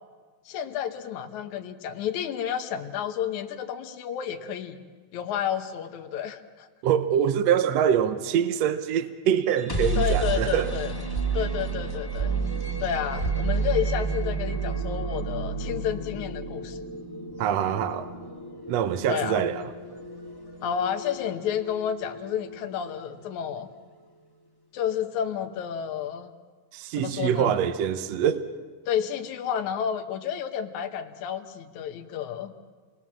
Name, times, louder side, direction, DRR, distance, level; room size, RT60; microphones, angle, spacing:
voice 1, 0.5-4.8 5.1-6.7 10.0-10.9 11.3-12.4 12.8-16.8 19.1-19.4 20.6-23.7 24.7-26.3 26.9-27.6 28.9-32.5, left 9 dB, 75° left, 2.5 m, -31 dB
voice 2, 6.8-10.7 17.4-18.1 18.7-19.6 26.7-28.5, right 9 dB, 65° right, 2.0 m, -24 dB
sound 1, 9.4-23.3, right 3 dB, 10° left, 1.7 m, -31 dB
29.0 x 21.0 x 7.4 m
omnidirectional pair, 3.5 m